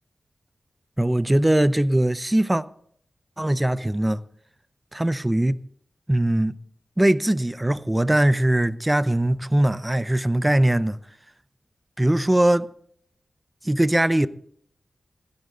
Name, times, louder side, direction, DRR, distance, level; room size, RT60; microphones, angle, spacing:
voice 1, 1.0-2.6 3.4-4.2 4.9-5.6 6.1-6.5 7.0-11.0 12.0-12.7 13.6-14.3, right 1 dB, 15° right, 0.6 m, -21 dB
16.0 x 11.0 x 3.9 m
cardioid pair, 60°, 0 cm